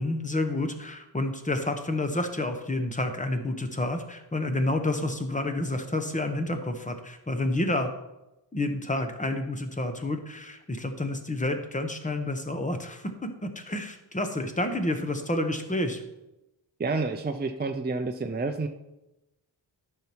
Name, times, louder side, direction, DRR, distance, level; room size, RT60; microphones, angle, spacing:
voice 1, 0.0-7.9 8.5-13.1 13.4-16.0, left 1 dB, 15° left, 6 dB, 1.0 m, -29 dB
voice 2, 16.8-18.7, right 3 dB, 25° right, 5 dB, 0.5 m, -29 dB
13.0 x 5.7 x 4.5 m, 0.94 s
wide cardioid pair, 150°, 44 cm